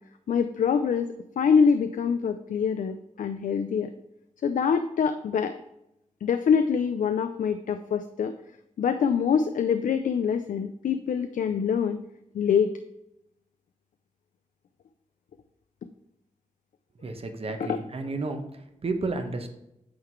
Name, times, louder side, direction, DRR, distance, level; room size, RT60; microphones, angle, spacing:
voice 1, 0.3-3.9 4.4-5.6 6.2-8.3 8.8-12.1 12.3-12.7 17.6-17.8, left 6 dB, 75° left, 9 dB, 0.4 m, -25 dB
voice 2, 17.0-19.5, right 3 dB, 45° right, 5 dB, 1.1 m, -32 dB
8.6 x 3.9 x 4.6 m, 0.84 s
cardioid pair, 65°, 13 cm